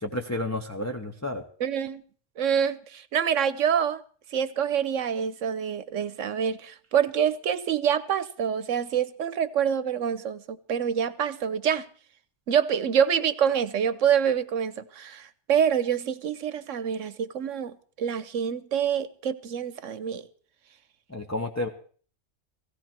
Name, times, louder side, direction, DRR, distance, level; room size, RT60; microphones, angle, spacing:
voice 1, 0.0-1.4 21.1-21.7, left 1 dB, 15° left, 1.0 m, -31 dB
voice 2, 1.6-2.0 2.4-4.0 4.3-11.9 12.5-20.2, right 8 dB, 85° right, 1.2 m, -26 dB
17.0 x 16.5 x 4.5 m
omnidirectional pair, 1.3 m